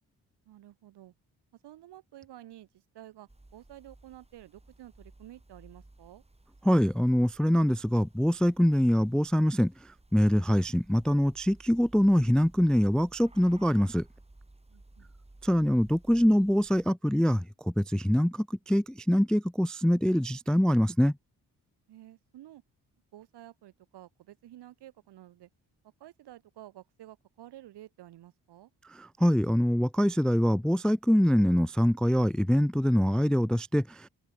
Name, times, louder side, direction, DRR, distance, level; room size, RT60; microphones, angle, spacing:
voice 1, 0.4-1.1 1.6-6.2 14.7-15.1 21.9-22.6 23.1-25.5 26.0-28.7, right 14 dB, 75° right, 2.1 m, -51 dB
sound 1, 3.3-16.9, right 2 dB, 15° right, 3.0 m, -56 dB
voice 2, 6.6-14.1 15.4-21.1 28.9-34.1, equal, ahead, 0.3 m, -24 dB
open air
hypercardioid pair, 45°, 41 cm